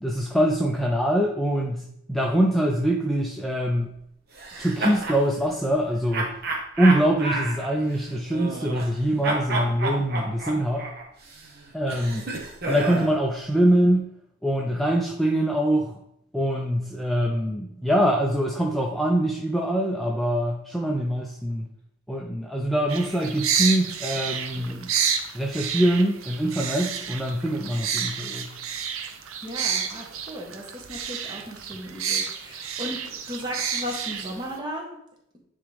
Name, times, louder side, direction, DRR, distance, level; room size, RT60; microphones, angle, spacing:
voice 1, 0.0-3.9 4.6-6.3 6.8-10.9 11.7-12.2 12.6-14.1 14.4-15.9 16.3-21.7 22.1-24.9 25.3-28.5, right 1 dB, ahead, -2 dB, 0.5 m, -24 dB
sound 1, 4.3-5.2 6.1-9.0 9.2-13.2, right 2 dB, 50° right, 1.2 m, -31 dB
sound 2, 22.9-34.6, right 7 dB, 85° right, 0.7 m, -30 dB
voice 2, 29.4-35.0, equal, 20° right, 0 dB, 1.3 m, -36 dB
9.8 x 3.6 x 3.5 m, 0.76 s
head